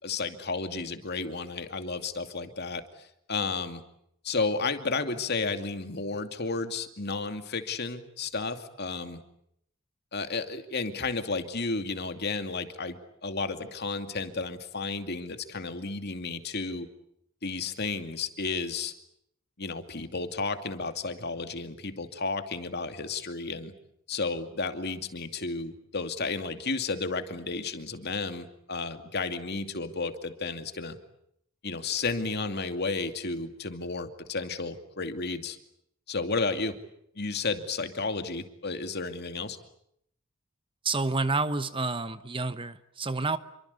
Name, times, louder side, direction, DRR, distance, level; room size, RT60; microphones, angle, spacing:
voice 1, 0.0-3.8 4.2-9.2 10.1-16.9 17.4-18.9 19.6-23.7 24.1-31.0 31.6-35.6 36.1-36.8 37.2-39.6, left 4 dB, 50° left, 7 dB, 2.6 m, -32 dB
voice 2, 40.8-43.4, right 3 dB, 25° right, 12 dB, 1.0 m, -29 dB
28.5 x 24.5 x 8.4 m, 0.74 s
head